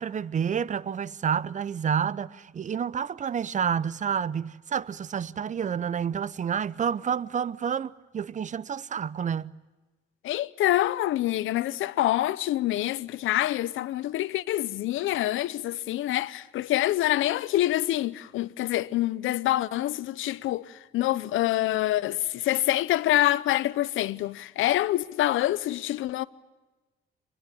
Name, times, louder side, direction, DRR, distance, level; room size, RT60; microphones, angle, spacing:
voice 1, 0.0-9.6, right 7 dB, 40° right, 0.7 m, -29 dB
voice 2, 10.2-26.2, left 14 dB, 80° left, 0.8 m, -26 dB
23.5 x 21.0 x 8.6 m
cardioid pair, 90°, 20 cm